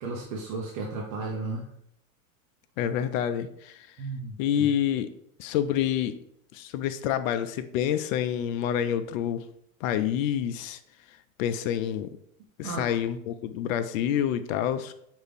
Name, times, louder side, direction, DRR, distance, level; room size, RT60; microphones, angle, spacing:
voice 1, 0.0-1.6 4.0-4.7 12.6-12.9, right 3 dB, 75° right, -1 dB, 0.9 m, -34 dB
voice 2, 2.8-3.9 4.4-5.1 5.4-6.1 6.5-9.5 9.8-10.8 11.4-12.1 12.6-14.9, left 10 dB, 70° left, 10 dB, 0.5 m, -27 dB
5.3 x 2.5 x 3.4 m, 0.73 s
hypercardioid pair, 100°, 42 cm